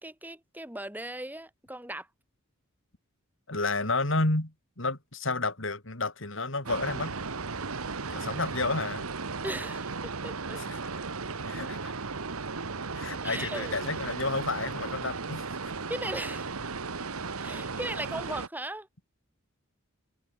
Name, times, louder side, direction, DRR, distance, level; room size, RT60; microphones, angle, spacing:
voice 1, 0.0-2.1 9.4-10.6 13.2-13.8 15.9-16.5 17.4-18.9, right 1 dB, 10° right, 4.0 m, -37 dB
voice 2, 3.5-7.1 8.1-9.0 10.6-10.8 11.4-11.9 12.9-15.5, left 3 dB, 60° left, 3.4 m, -31 dB
sound 1, 6.7-18.5, right 4 dB, 90° right, 1.4 m, -36 dB
head